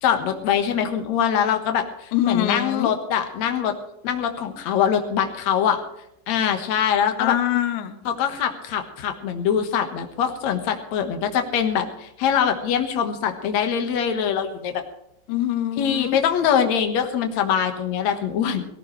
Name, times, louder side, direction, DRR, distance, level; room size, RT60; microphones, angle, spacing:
voice 1, 0.0-3.7 4.0-5.8 6.3-7.4 8.0-14.8 15.8-18.7, left 8 dB, 60° left, 6 dB, 1.9 m, -23 dB
voice 2, 2.1-2.9 7.2-8.0 15.3-16.2, left 12 dB, 85° left, 9 dB, 3.4 m, -23 dB
18.0 x 16.5 x 3.2 m, 0.82 s
omnidirectional pair, 5.1 m